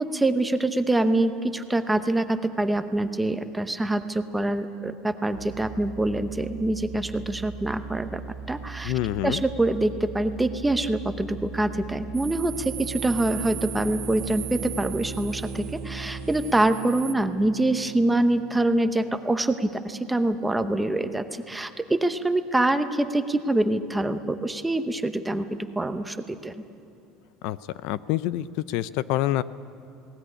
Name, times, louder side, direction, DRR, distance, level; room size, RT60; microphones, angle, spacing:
voice 1, 0.0-8.2 8.5-8.9 9.2-25.5 25.8-26.5, right 2 dB, 5° right, 9 dB, 0.8 m, -25 dB
sound 1, 5.3-16.4, right 5 dB, 90° right, 1.7 m, -39 dB
voice 2, 8.8-9.4 27.4-27.6 27.8-29.4, left 14 dB, 60° left, 17 dB, 0.5 m, -26 dB
sound 2, 12.1-17.1, right 15 dB, 40° right, 0.8 m, -39 dB
sound 3, 12.5-19.1, right 2 dB, 60° right, 2.0 m, -41 dB
20.0 x 18.5 x 9.9 m, 2.8 s
cardioid pair, 170°, 0 cm